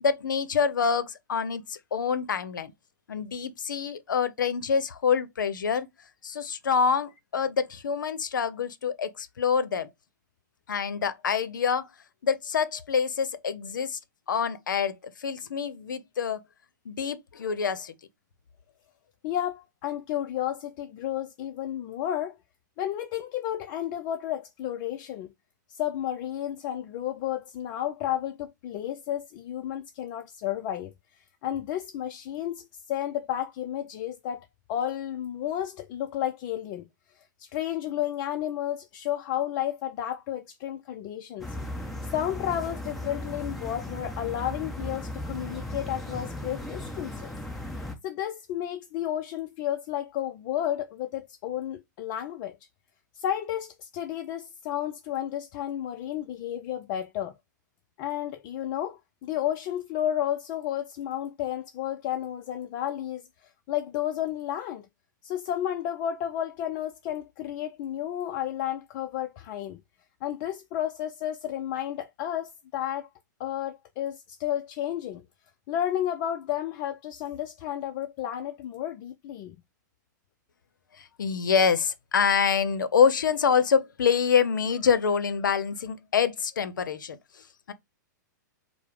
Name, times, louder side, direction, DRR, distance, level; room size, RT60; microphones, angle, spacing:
voice 1, 0.0-2.7 3.1-5.9 6.2-9.9 10.7-11.9 12.2-14.0 14.3-16.4 16.9-17.9 81.0-87.2 87.7-87.8, left 6 dB, 80° left, 0.6 m, -26 dB
voice 2, 19.2-22.4 22.8-25.3 25.7-30.9 31.4-36.9 37.4-41.6 42.1-47.3 48.0-52.6 53.1-57.3 58.0-63.2 63.7-64.9 65.2-69.8 70.2-73.1 73.4-75.2 75.7-79.6, left 11 dB, 40° left, 0.4 m, -32 dB
sound 1, 41.4-47.9, left 1 dB, ahead, 0.9 m, -36 dB
4.6 x 2.1 x 3.3 m
hypercardioid pair, 120°, 10 cm